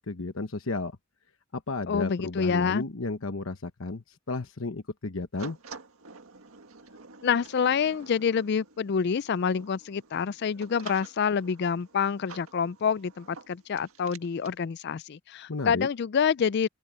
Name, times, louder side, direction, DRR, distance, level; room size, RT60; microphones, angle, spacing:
voice 1, 0.1-1.0 1.5-5.6 15.5-15.9, left 3 dB, 70° left, 1.0 m, -33 dB
voice 2, 1.9-2.8 7.2-16.7, left 6 dB, 50° left, 0.4 m, -27 dB
sound 1, 5.4-14.6, right 4 dB, 85° right, 1.7 m, -49 dB
head